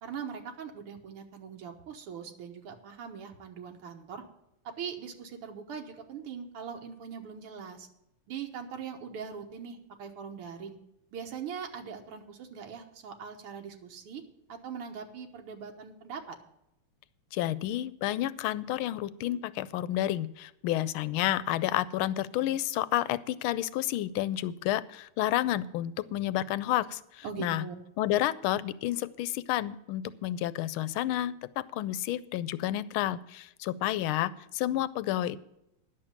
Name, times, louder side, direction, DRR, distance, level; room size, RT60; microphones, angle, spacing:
voice 1, 0.0-4.2 4.6-7.9 8.3-10.8 11.1-14.2 14.5-16.4 27.2-27.8, right 6 dB, 85° right, 3 dB, 2.1 m, -41 dB
voice 2, 17.3-27.6 28.0-35.4, left 13 dB, 80° left, 17 dB, 1.4 m, -30 dB
10.5 x 6.7 x 8.6 m, 0.84 s
omnidirectional pair, 2.4 m